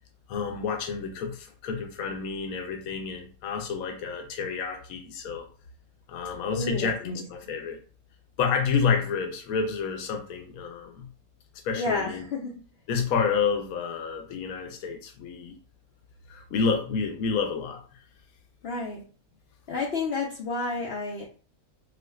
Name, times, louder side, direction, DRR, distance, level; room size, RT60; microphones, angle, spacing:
voice 1, 0.3-5.5 6.1-7.8 8.4-11.1 11.6-12.2 12.9-15.5 16.3-17.8, left 5 dB, 80° left, 4 dB, 1.1 m, -29 dB
voice 2, 6.5-7.2 11.8-12.5 18.6-19.0 19.7-21.2, left 3 dB, 60° left, -1 dB, 0.7 m, -30 dB
4.7 x 2.2 x 2.3 m, 0.39 s
omnidirectional pair, 1.5 m